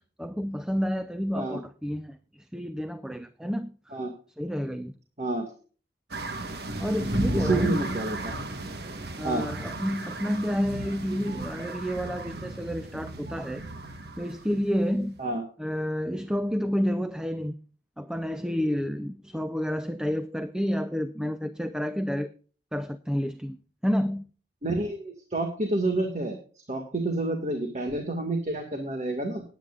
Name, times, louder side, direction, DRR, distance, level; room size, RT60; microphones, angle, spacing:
voice 1, 0.0-3.7 4.4-4.9 6.8-7.9 9.2-13.7 14.2-15.1 15.6-17.5 18.0-22.3 22.7-23.6 23.8-24.2, equal, 5° right, 0.5 m, -29 dB
voice 2, 5.2-5.5 7.3-8.4 9.2-9.5 15.2-15.4 24.6-26.4 26.7-29.4, right 2 dB, 40° right, 1.9 m, -29 dB
sound 1, 6.1-15.2, right 1 dB, 60° right, 1.5 m, -34 dB
19.5 x 9.1 x 2.4 m
head